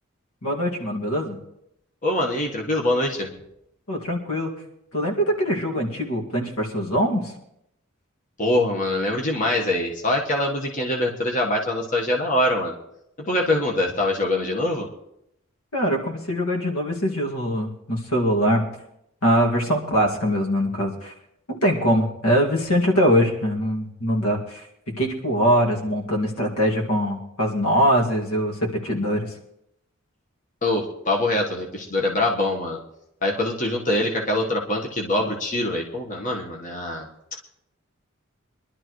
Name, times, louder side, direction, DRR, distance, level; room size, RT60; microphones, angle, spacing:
voice 1, 0.4-1.4 3.9-4.5 4.9-7.3 15.7-18.6 19.2-21.1 21.5-29.3, equal, 85° left, 0 dB, 2.2 m, -22 dB
voice 2, 2.0-3.3 8.4-12.7 13.2-14.9 30.6-32.8 33.2-37.1, left 1 dB, 35° left, 0 dB, 1.4 m, -24 dB
23.0 x 11.5 x 3.1 m, 0.79 s
head